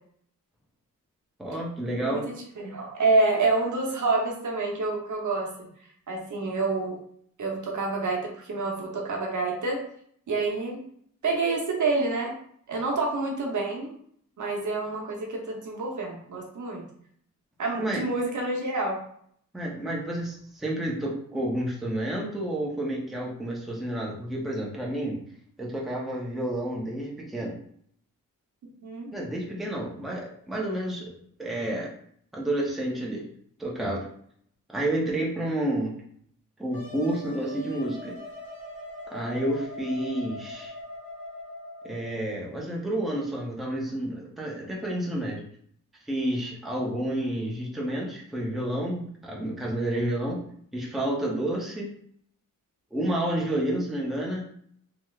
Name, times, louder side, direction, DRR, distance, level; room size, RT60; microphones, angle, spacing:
voice 1, 1.4-2.2 17.8-18.0 19.5-25.2 25.6-27.6 29.1-31.1 31.4-31.9 32.3-33.2 33.6-34.1 34.7-35.9 36.6-38.1 39.1-40.7 41.8-45.4 46.1-50.4 50.7-51.9 52.9-54.4, right 1 dB, ahead, -3 dB, 0.6 m, -30 dB
voice 2, 2.0-5.5 6.1-7.0 7.4-9.8 10.3-10.8 11.2-12.3 12.7-13.9 14.4-16.8 17.6-19.0 28.8-29.1, right 3 dB, 60° right, 0 dB, 0.7 m, -27 dB
Wind instrument woodwind instrument, 36.7-42.2, left 1 dB, 85° left, 1.2 m, -41 dB
3.1 x 2.8 x 2.3 m, 0.64 s
wide cardioid pair, 135°, 34 cm